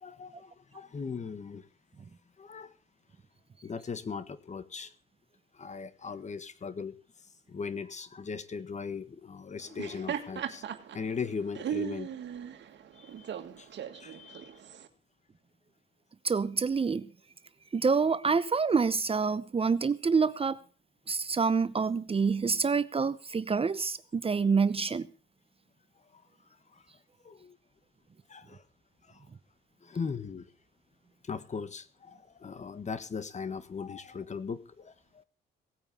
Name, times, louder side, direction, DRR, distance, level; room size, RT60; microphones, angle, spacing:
voice 1, 0.0-1.6 2.4-2.7 3.6-4.9 5.5-6.9 7.5-10.6 10.9-12.1 12.9-14.5 26.1-26.2 26.7-26.8 27.2-27.6 28.3-28.6 29.1-29.2 29.8-30.5 31.2-35.2, left 5 dB, 35° left, 15 dB, 1.6 m, -39 dB
Laughter, 9.6-14.9, right 9 dB, 65° right, 2.1 m, -38 dB
voice 2, 16.2-17.1 17.7-20.6 21.1-25.1, right 5 dB, 30° right, 16 dB, 0.8 m, -27 dB
18.0 x 8.9 x 7.0 m, 0.37 s
cardioid pair, 90°, 20 cm